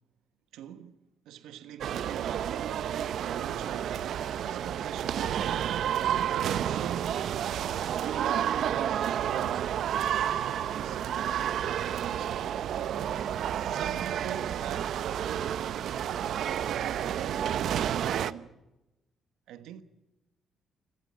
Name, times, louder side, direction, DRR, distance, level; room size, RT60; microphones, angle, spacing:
voice 1, 0.5-1.0 1.2-2.5 3.1-5.4 6.1-7.4 8.1-10.0 10.4-12.5 13.6-16.3 16.7-18.5 19.5-19.8, right 10 dB, 90° right, 1.3 m, -42 dB
sound 1, 1.8-18.3, right 9 dB, 70° right, 0.7 m, -30 dB
29.0 x 13.0 x 8.4 m
cardioid pair, 90°, 0 cm